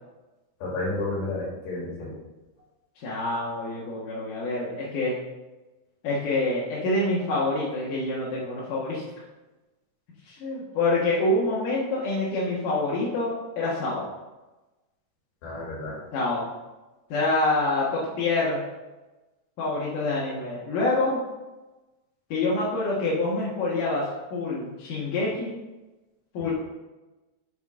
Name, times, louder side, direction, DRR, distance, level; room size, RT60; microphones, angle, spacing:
voice 1, 0.6-2.1 15.4-15.9 26.4-26.5, left 2 dB, 90° left, -4 dB, 4.8 m, -31 dB
voice 2, 3.0-5.2 6.0-9.0 10.2-14.1 16.1-16.5 17.1-18.6 19.6-21.2 22.3-25.6 26.3-26.5, left 2 dB, 60° left, -7 dB, 2.7 m, -26 dB
8.9 x 7.2 x 3.7 m, 1.1 s
omnidirectional pair, 4.8 m